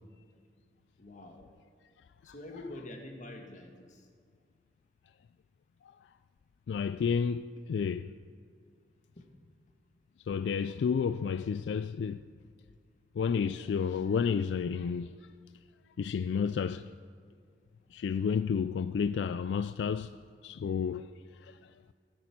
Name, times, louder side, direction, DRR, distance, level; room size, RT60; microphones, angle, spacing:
voice 1, 1.0-1.4 2.2-4.1 9.2-9.3, left 1 dB, 45° left, 1.7 m, -46 dB
voice 2, 6.7-8.1 10.3-12.2 13.2-15.2 16.0-16.9 17.9-20.1 20.4-21.1 21.3-21.7, left 6 dB, 75° left, 0.3 m, -31 dB
17.5 x 9.4 x 5.9 m
head